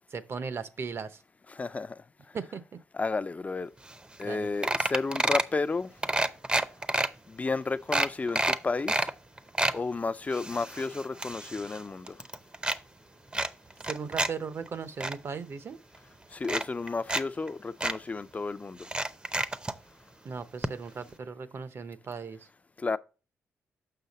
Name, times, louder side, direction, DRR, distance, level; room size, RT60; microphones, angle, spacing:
voice 1, 0.1-1.2 2.3-2.6 4.2-4.5 13.9-15.8 20.2-22.5, right 5 dB, 50° right, 0.8 m, -37 dB
voice 2, 1.5-2.0 2.9-3.7 4.2-5.9 7.3-9.1 9.7-12.2 16.3-18.8 22.8-23.0, left 3 dB, 30° left, 0.4 m, -32 dB
sound 1, 3.9-4.0 4.2-4.4 4.6-5.5 6.0-7.1 7.5-7.6 7.9-9.1 9.4-9.8 10.3-11.8 12.1-12.8 13.3-14.3 14.7-15.1 15.9-16.0 16.4-17.2 17.5-17.6 17.8-18.0 18.8-19.8 20.6-20.7 21.0-21.1, right 2 dB, 20° right, 0.6 m, -28 dB
6.8 x 5.7 x 4.1 m
cardioid pair, 70°, 5 cm